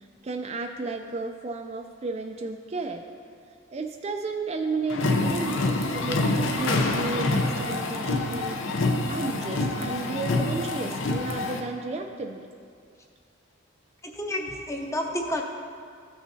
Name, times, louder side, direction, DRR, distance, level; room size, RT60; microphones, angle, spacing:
voice 1, 0.2-3.0 3.7-8.7 9.1-12.5 15.3-15.4, right 3 dB, 30° right, 4 dB, 0.3 m, -33 dB
sound 1, 4.9-11.6, left 2 dB, 75° left, 0.6 m, -26 dB
voice 2, 14.0-15.4, left 1 dB, 15° left, 2 dB, 0.6 m, -30 dB
14.0 x 6.2 x 2.7 m, 2.2 s
head